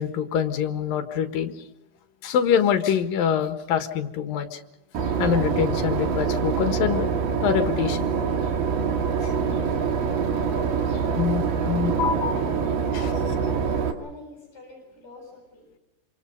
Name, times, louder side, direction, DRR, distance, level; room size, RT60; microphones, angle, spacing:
voice 1, 0.0-1.5 2.2-4.6 5.2-7.1 7.4-8.1 9.2-9.5 11.2-12.3 12.9-13.0, left 8 dB, 65° left, 7 dB, 3.1 m, -25 dB
Boat Water vehicle / Engine, 4.9-13.9, right 6 dB, 60° right, 3.6 m, -25 dB
voice 2, 11.6-12.5 12.9-15.7, left 1 dB, 15° left, 1 dB, 8.1 m, -44 dB
27.5 x 27.0 x 5.3 m, 0.92 s
omnidirectional pair, 4.7 m